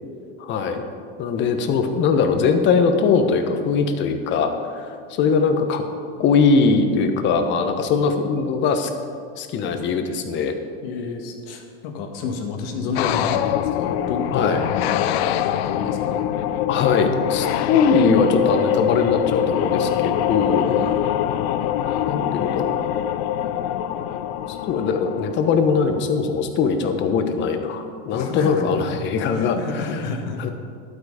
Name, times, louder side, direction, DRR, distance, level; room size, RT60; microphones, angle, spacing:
voice 1, 0.4-0.8 1.2-5.8 6.2-8.9 9.4-10.6 14.3-14.6 16.7-20.8 22.1-22.8 24.5-30.0 30.4-30.5, left 5 dB, 40° left, 7 dB, 1.1 m, -21 dB
voice 2, 10.8-16.2 20.7-21.0 28.1-30.5, left 4 dB, 70° left, 3 dB, 1.8 m, -31 dB
sound 1, 12.9-25.9, left 11 dB, 85° left, 0.6 m, -24 dB
12.0 x 8.3 x 5.0 m, 2.2 s
supercardioid pair, 150°, 30 cm